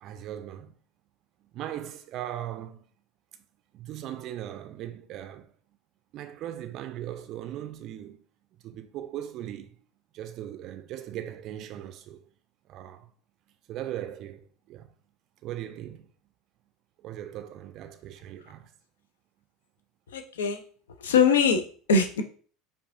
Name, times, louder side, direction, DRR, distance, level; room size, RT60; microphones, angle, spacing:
voice 1, 0.0-0.7 1.5-2.9 3.7-5.6 6.1-8.2 8.6-9.8 10.1-12.2 12.7-13.1 13.7-14.9 15.4-16.1 17.0-18.7, right 11 dB, 50° right, 0.4 m, -39 dB
voice 2, 20.1-20.6 21.0-22.2, left 5 dB, 70° left, 0.5 m, -22 dB
4.7 x 2.5 x 2.4 m
figure-of-eight pair, 70°, 0 cm